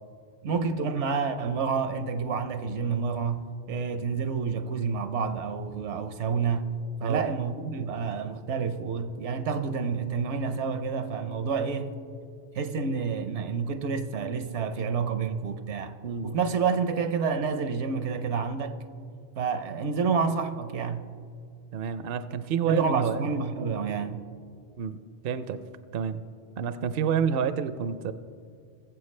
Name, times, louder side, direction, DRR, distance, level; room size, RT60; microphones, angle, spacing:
voice 1, 0.4-6.7 7.0-12.0 12.5-15.9 16.2-18.8 19.4-21.1 22.7-24.2, right 5 dB, 80° right, 1.0 m, -29 dB
voice 2, 16.0-16.4 21.7-23.2 24.8-25.6 25.9-26.2 26.6-28.1, right 7 dB, 60° right, 0.7 m, -29 dB
21.0 x 7.8 x 3.2 m
omnidirectional pair, 1.2 m